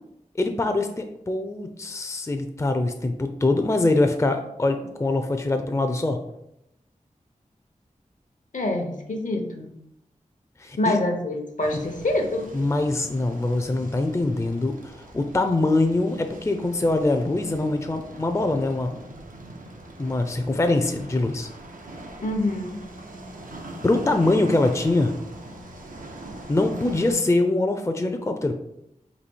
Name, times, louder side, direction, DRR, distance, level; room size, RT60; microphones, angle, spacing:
voice 1, 0.3-6.2 10.6-11.0 11.7-11.9 12.5-19.0 20.0-21.5 23.8-25.1 26.5-28.5, left 2 dB, 20° left, 6 dB, 0.5 m, -23 dB
voice 2, 8.5-9.7 10.8-12.5 22.2-22.8, left 1 dB, 70° left, 3 dB, 0.8 m, -26 dB
sound 1, 11.6-27.1, right 1 dB, 80° right, 0.7 m, -42 dB
4.1 x 2.7 x 4.5 m, 0.79 s
cardioid pair, 45°, 14 cm